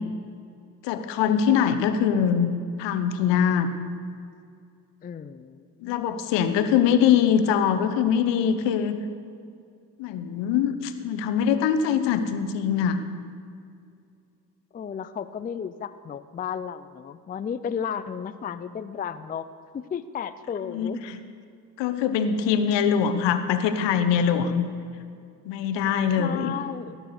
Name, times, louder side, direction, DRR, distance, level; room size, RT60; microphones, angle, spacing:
voice 1, 0.8-2.5 2.8-3.7 5.8-9.0 10.0-13.0 20.7-21.2 21.8-24.6 25.4-26.5, left 8 dB, 65° left, 10 dB, 1.1 m, -23 dB
voice 2, 5.0-6.2 14.7-19.5 19.7-21.0 26.2-27.0, left 7 dB, 20° left, 13 dB, 0.4 m, -33 dB
18.0 x 6.3 x 6.6 m, 2.4 s
hypercardioid pair, 55°, 47 cm